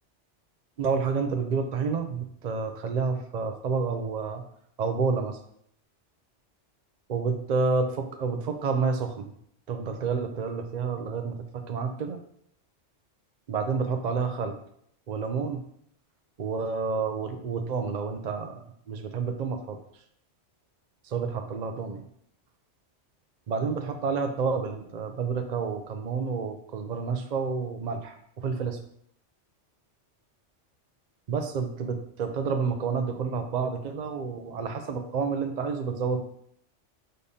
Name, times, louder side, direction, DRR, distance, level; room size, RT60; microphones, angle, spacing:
voice 1, 0.8-4.4 4.8-5.4 7.1-9.3 9.7-12.2 13.5-14.6 15.1-15.6 16.4-19.8 21.1-22.0 23.5-28.8 31.3-36.2, right 5 dB, 50° right, 5 dB, 0.6 m, -29 dB
6.7 x 5.1 x 2.8 m, 0.68 s
omnidirectional pair, 1.2 m